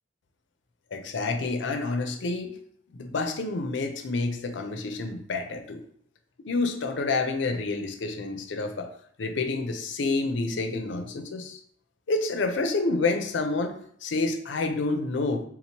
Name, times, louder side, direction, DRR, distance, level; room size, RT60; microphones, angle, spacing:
voice 1, 0.9-2.5 2.9-5.8 6.5-8.9 9.2-11.6 12.1-15.4, left 3 dB, 75° left, 5 dB, 0.5 m, -28 dB
3.8 x 2.9 x 2.9 m, 0.64 s
head